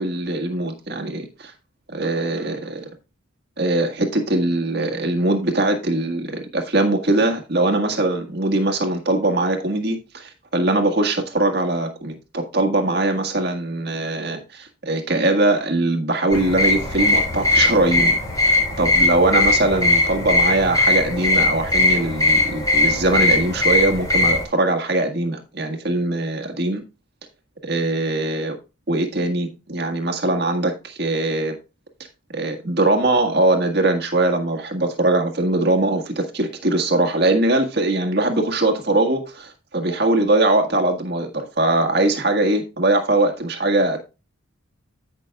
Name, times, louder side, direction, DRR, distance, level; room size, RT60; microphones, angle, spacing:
voice 1, 0.0-1.5 1.9-2.9 3.6-26.8 27.6-28.6 28.9-31.5 32.3-44.0, right 2 dB, 50° right, 1.6 m, -21 dB
sound 1, 16.3-24.4, left 2 dB, 15° left, 3.0 m, -19 dB
14.5 x 6.0 x 2.3 m
head